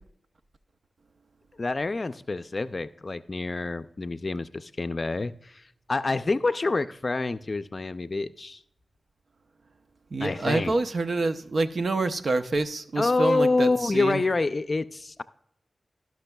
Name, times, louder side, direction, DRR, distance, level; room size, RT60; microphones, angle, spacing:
voice 1, 1.6-8.6 10.2-10.8 13.0-15.2, left 3 dB, 50° left, 11 dB, 0.4 m, -27 dB
voice 2, 10.1-14.2, right 3 dB, 70° right, 10 dB, 0.6 m, -27 dB
17.5 x 6.0 x 2.2 m, 0.70 s
cardioid pair, 45°, 0 cm